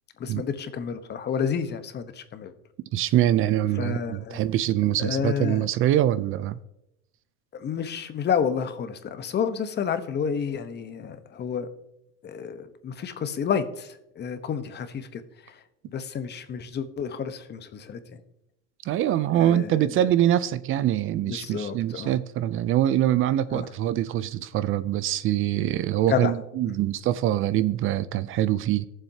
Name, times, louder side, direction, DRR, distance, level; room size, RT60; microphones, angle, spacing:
voice 1, 0.2-2.5 3.8-4.4 5.0-5.7 7.5-11.7 12.2-15.6 15.9-18.2 19.3-19.9 21.3-22.1 23.5-23.7 26.1-26.3, left 7 dB, 30° left, 1.0 m, -30 dB
voice 2, 2.9-6.6 18.9-28.9, right 12 dB, 35° right, 0.5 m, -24 dB
18.5 x 7.3 x 2.8 m
supercardioid pair, 120°, 36 cm